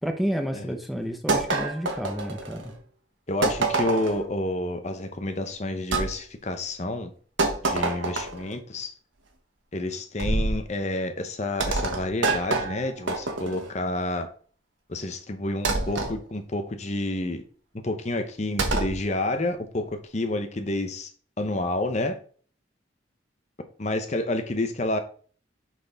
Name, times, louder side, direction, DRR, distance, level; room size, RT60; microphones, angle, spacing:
voice 1, 0.0-2.7, equal, ahead, 0.7 m, -30 dB
sound 1, 1.3-2.7 3.4-4.2 5.9-6.1 7.4-8.5 10.2-10.6 11.6-13.7 15.6-16.1 18.6-19.0, right 3 dB, 80° right, 1.4 m, -26 dB
voice 2, 3.3-7.1 7.6-8.9 9.7-14.3 14.9-17.4 17.8-21.1 21.4-22.2 23.8-25.0, left 1 dB, 35° left, 0.8 m, -29 dB
6.1 x 5.8 x 3.9 m
head